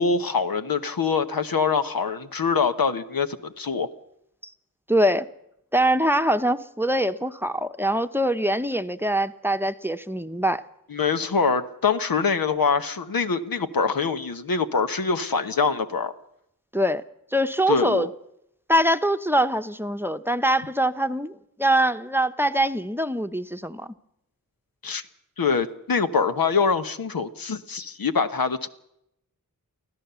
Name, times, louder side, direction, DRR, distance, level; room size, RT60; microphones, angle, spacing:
voice 1, 0.0-3.9 10.9-16.1 17.7-18.1 24.8-25.0 25.4-28.7, left 5 dB, 85° left, 1.2 m, -24 dB
voice 2, 4.9-5.3 5.7-10.6 16.7-17.0 17.3-18.1 18.7-23.9, right 1 dB, 5° right, 0.9 m, -23 dB
24.5 x 15.5 x 6.9 m
wide cardioid pair, 55°, 34 cm